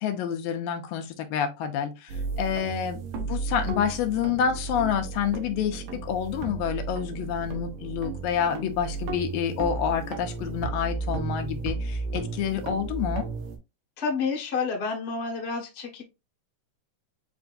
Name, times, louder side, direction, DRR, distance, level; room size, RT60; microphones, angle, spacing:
voice 1, 0.0-3.0 3.3-13.3, left 8 dB, 85° left, 2.4 m, -28 dB
sound 1, 2.1-13.6, right 4 dB, 70° right, 2.3 m, -34 dB
voice 2, 14.0-16.0, left 4 dB, 65° left, 0.6 m, -29 dB
7.8 x 2.6 x 2.5 m
omnidirectional pair, 4.0 m